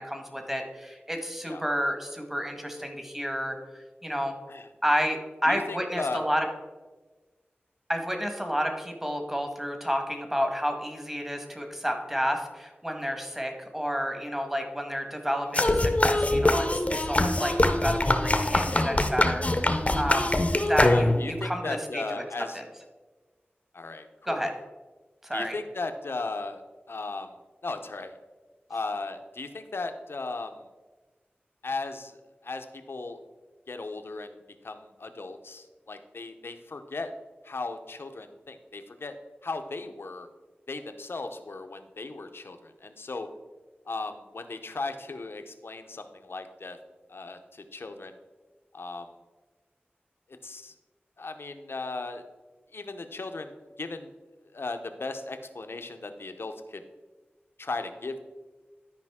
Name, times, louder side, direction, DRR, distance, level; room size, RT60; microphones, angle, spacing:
voice 1, 0.0-3.6 4.0-4.3 4.8-6.4 7.9-20.4 20.7-22.0 22.5-22.6 24.2-24.5 25.2-25.5, equal, 10° right, 4 dB, 1.4 m, -30 dB
voice 2, 5.5-6.2 17.5-17.6 20.1-20.3 20.9-22.6 23.7-24.5 25.3-26.6 26.9-27.3 27.6-28.1 28.7-30.6 31.6-32.2 32.4-33.2 33.7-34.4 34.6-37.1 37.4-39.1 39.4-40.3 40.7-43.3 43.9-46.8 47.1-48.2 48.7-49.1 50.4-50.7 51.2-52.2 52.7-54.1 54.5-56.8 57.6-58.2, left 3 dB, 75° left, 7 dB, 0.7 m, -36 dB
sound 1, 15.5-21.4, left 1 dB, 35° left, 0.8 m, -23 dB
12.0 x 5.1 x 3.6 m, 1.3 s
wide cardioid pair, 55°, 4 cm